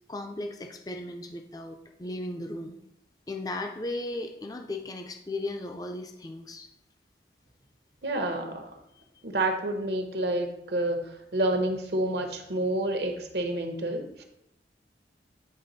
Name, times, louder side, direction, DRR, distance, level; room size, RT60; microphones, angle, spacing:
voice 1, 0.1-2.7 3.3-6.7 9.0-9.2, left 2 dB, 20° left, 4 dB, 0.5 m, -36 dB
voice 2, 8.0-8.8 9.2-14.2, right 1 dB, 70° right, 4 dB, 1.0 m, -29 dB
9.6 x 3.5 x 4.1 m, 0.81 s
head